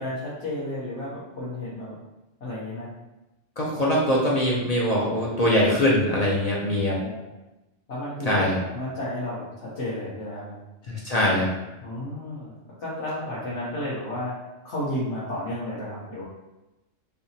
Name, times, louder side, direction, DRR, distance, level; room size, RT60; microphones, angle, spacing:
voice 1, 0.0-1.9 2.4-2.9 6.9-7.2 7.9-10.6 11.8-14.3 14.6-16.2, left 1 dB, 70° left, -9 dB, 1.2 m, -32 dB
voice 2, 3.6-7.0 8.3-8.6 10.9-11.5, left 1 dB, 45° left, -5 dB, 0.5 m, -22 dB
3.3 x 2.8 x 2.7 m, 0.99 s
omnidirectional pair, 1.2 m